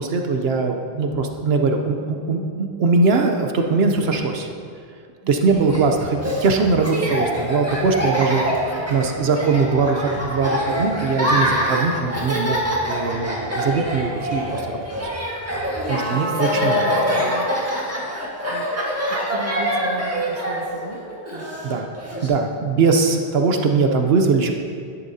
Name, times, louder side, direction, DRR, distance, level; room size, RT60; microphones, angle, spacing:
voice 1, 0.0-4.5 5.3-8.4 8.9-15.6 15.9-16.9 21.6-21.8 22.2-24.5, right 4 dB, 75° right, 4 dB, 1.0 m, -21 dB
Laughter, 5.5-22.3, equal, 15° right, 1.5 m, -25 dB
voice 2, 8.5-9.3 11.3-11.6 16.1-17.9 18.4-18.7 19.1-21.0 21.3-21.9 22.1-22.3, right 2 dB, 40° right, 3 dB, 0.9 m, -37 dB
12.0 x 11.0 x 2.8 m, 2.2 s
omnidirectional pair, 1.0 m